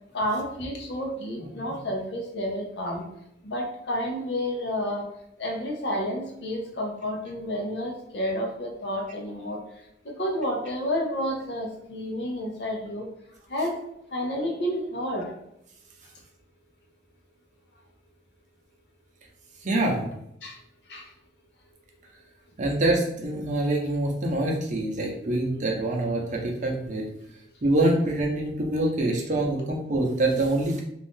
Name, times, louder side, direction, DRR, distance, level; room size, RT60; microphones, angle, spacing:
voice 1, 0.1-3.1 3.4-5.1 5.4-13.1 13.5-13.8 14.1-15.4 20.4-20.6 20.9-21.1, equal, 65° left, 0 dB, 0.8 m, -30 dB
voice 2, 19.6-20.0 22.6-27.0 27.6-30.8, right 2 dB, 45° right, 0 dB, 0.7 m, -25 dB
2.6 x 2.5 x 3.5 m, 0.78 s
head